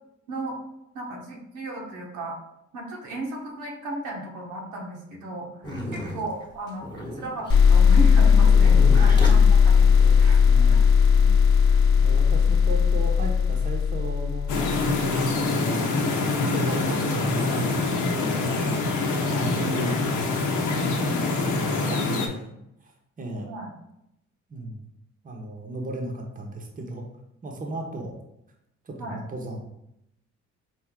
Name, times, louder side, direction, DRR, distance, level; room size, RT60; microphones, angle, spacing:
voice 1, 0.3-0.6 0.9-2.4 2.7-6.9 7.1-9.9 10.2-10.4 10.7-10.8 11.1-11.4 19.2-19.5 23.4-23.7 29.0-29.2, right 1 dB, 85° right, -1 dB, 1.1 m, -35 dB
sound 1, 5.6-10.5 11.3-12.2, left 1 dB, 15° left, 1.1 m, -34 dB
voice 2, 5.6-6.1 8.7-9.2 10.0-10.9 12.0-14.5 15.0-15.9 16.4-18.6 19.3-20.0 20.9-22.5 22.8-22.9 23.2-23.5 24.5-24.8 25.2-27.1 27.4-28.1 28.8-29.6, right 1 dB, 25° right, 1 dB, 0.8 m, -34 dB
sound 2, 7.5-15.0, left 6 dB, 45° left, 0.7 m, -17 dB
sound 3, 14.5-22.3, left 3 dB, 75° left, 0.8 m, -25 dB
4.4 x 2.7 x 3.7 m, 0.82 s
cardioid pair, 90°, 30 cm